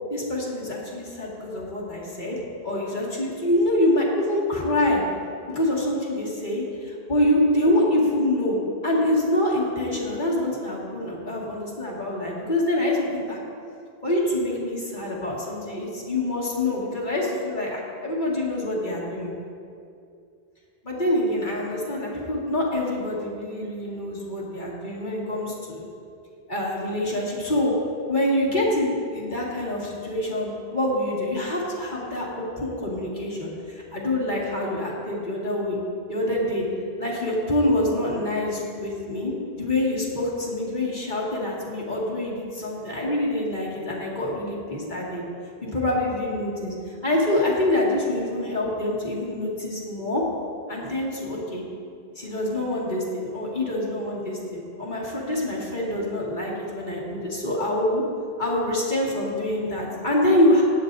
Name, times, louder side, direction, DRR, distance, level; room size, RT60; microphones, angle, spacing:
voice 1, 0.1-5.0 5.5-6.6 7.1-8.6 8.8-13.4 14.0-19.3 20.8-25.8 26.5-27.7 28.1-35.8 36.1-36.7 37.0-45.2 45.6-50.2 50.7-51.6 52.2-58.0 58.4-60.6, left 1 dB, 50° left, -5 dB, 2.3 m, -25 dB
18.0 x 10.0 x 2.7 m, 2.5 s
omnidirectional pair, 1.1 m